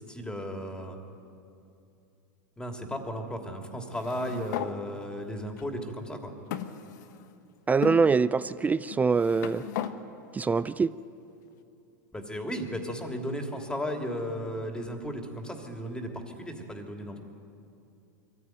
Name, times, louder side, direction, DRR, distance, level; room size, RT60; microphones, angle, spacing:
voice 1, 0.1-1.0 2.6-6.3 12.1-17.2, equal, 10° left, 3 dB, 3.0 m, -35 dB
sound 1, 3.9-4.7 5.6-5.7 6.5-7.3 7.8-8.0 8.9-10.0, left 11 dB, 70° left, 1.3 m, -36 dB
voice 2, 7.7-9.6 10.3-10.9, right 4 dB, 15° right, 16 dB, 0.4 m, -24 dB
23.0 x 15.0 x 9.3 m, 2.6 s
hypercardioid pair, 105°, 10 cm